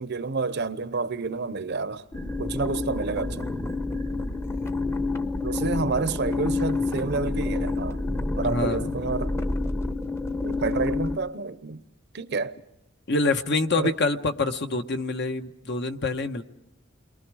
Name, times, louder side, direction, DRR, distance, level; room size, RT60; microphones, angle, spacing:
voice 1, 0.0-2.0 2.4-3.5 5.4-8.0 8.4-9.3 10.4-11.8 12.1-12.5 13.8-13.9, right 4 dB, 55° right, 0.8 m, -29 dB
sound 1, 2.1-11.2, left 3 dB, 15° left, 0.8 m, -28 dB
voice 2, 4.1-4.4 8.4-8.9 13.1-16.4, left 3 dB, 60° left, 1.1 m, -26 dB
29.5 x 23.0 x 4.8 m
head